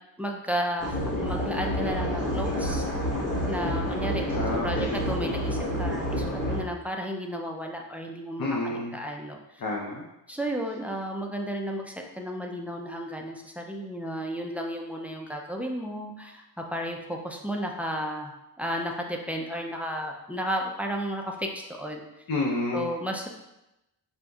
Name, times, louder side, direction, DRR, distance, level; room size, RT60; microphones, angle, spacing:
voice 1, 0.2-2.9 3.5-4.3 4.6-9.4 10.3-16.4 16.7-18.3 18.6-22.0 22.7-23.3, equal, 5° right, 1 dB, 0.3 m, -33 dB
sound 1, 0.8-6.6, equal, 20° left, 1.3 m, -29 dB
voice 2, 4.2-5.0 8.4-8.9 9.6-10.1 22.3-22.9, left 2 dB, 55° left, -3 dB, 0.7 m, -29 dB
6.3 x 2.6 x 2.3 m, 0.92 s
wide cardioid pair, 120°, 42 cm